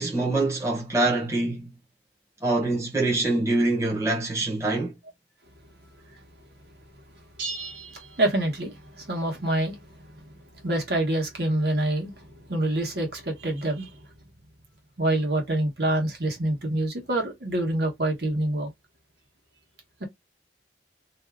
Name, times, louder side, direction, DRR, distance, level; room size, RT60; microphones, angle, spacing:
voice 1, 0.0-1.7 2.4-4.9, right 2 dB, 15° right, 0.9 m, -25 dB
sound 1, 7.4-9.0, right 3 dB, 75° right, 0.8 m, -38 dB
voice 2, 8.2-9.8 10.1-10.2 10.6-13.9 15.0-18.7, right 1 dB, 60° right, 1.2 m, -26 dB
2.7 x 2.3 x 3.4 m
head